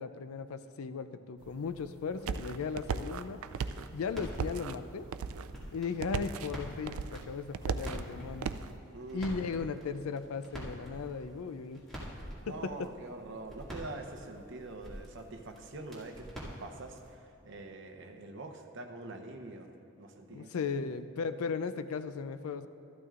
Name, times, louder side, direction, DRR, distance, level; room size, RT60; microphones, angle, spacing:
voice 1, 0.0-3.4 3.9-5.1 5.7-8.5 9.1-11.8 12.5-12.9 20.3-22.7, left 5 dB, 85° left, 12 dB, 0.4 m, -37 dB
sound 1, 1.4-8.7, right 6 dB, 85° right, 0.4 m, -38 dB
sound 2, 3.7-17.1, equal, ahead, 2.1 m, -47 dB
voice 2, 8.9-9.4 12.4-16.3 16.6-19.7 20.0-20.5, right 2 dB, 60° right, 5 dB, 0.8 m, -44 dB
13.5 x 12.0 x 2.5 m, 2.9 s
head